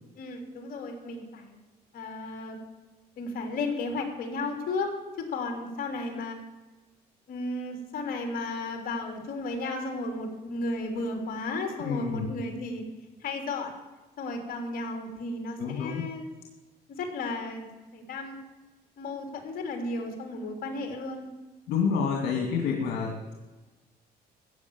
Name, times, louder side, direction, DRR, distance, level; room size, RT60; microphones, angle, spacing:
voice 1, 0.2-1.6 1.9-2.6 3.2-6.4 7.3-12.8 13.2-13.7 14.2-16.3 16.9-18.4 19.0-21.3, left 2 dB, 60° left, 3 dB, 3.4 m, -34 dB
voice 2, 11.8-12.3 15.6-16.1 21.7-23.3, left 6 dB, 80° left, 0 dB, 2.4 m, -28 dB
14.5 x 8.6 x 7.3 m, 1.2 s
cardioid pair, 110°, 17 cm